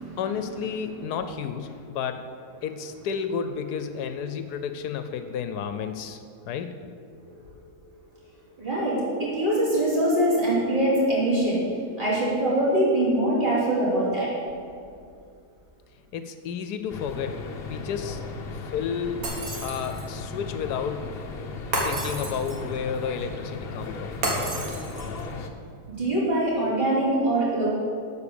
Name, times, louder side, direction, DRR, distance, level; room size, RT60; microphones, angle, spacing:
voice 1, 0.2-2.3 2.6-6.7 16.1-19.3 19.6-21.1 21.8-24.2, left 7 dB, 75° left, 8 dB, 1.1 m, -32 dB
voice 2, 8.6-11.6 12.0-14.3 25.9-27.7, right 1 dB, 30° right, -7 dB, 3.2 m, -23 dB
sound 1, 16.9-25.5, left 3 dB, 50° left, 0.8 m, -36 dB
Shatter, 19.2-20.2 21.7-22.7 24.2-25.2, right 1 dB, 60° right, 2.0 m, -30 dB
12.0 x 4.8 x 6.9 m, 2.4 s
omnidirectional pair, 1.7 m